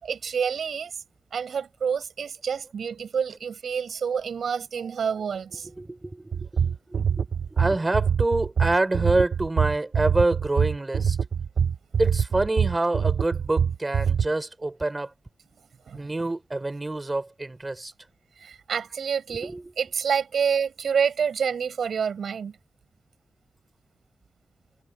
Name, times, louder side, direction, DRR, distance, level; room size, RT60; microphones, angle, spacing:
voice 1, 0.0-1.0 1.3-5.7 15.9-16.0 18.4-22.6, right 7 dB, 80° right, 6.5 m, -28 dB
voice 2, 5.8-7.0 7.5-11.2 12.0-15.1 15.9-17.9 19.4-19.6, right 2 dB, 20° right, 4.4 m, -26 dB
sound 1, 6.3-14.3, right 7 dB, 55° right, 1.0 m, -24 dB
wide cardioid pair, 180°, 0 cm